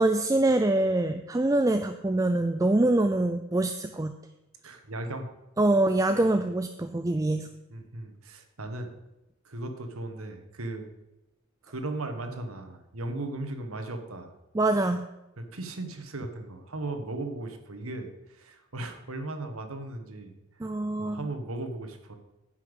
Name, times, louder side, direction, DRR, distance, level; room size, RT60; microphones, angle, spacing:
voice 1, 0.0-4.1 5.6-7.5 14.5-15.1 20.6-21.2, right 2 dB, 15° right, 8 dB, 0.3 m, -24 dB
voice 2, 4.6-5.3 7.7-8.9 9.4-10.9 11.6-14.4 15.4-20.3 21.0-22.2, right 2 dB, 80° right, 6 dB, 1.5 m, -37 dB
10.0 x 5.8 x 8.1 m, 0.97 s
head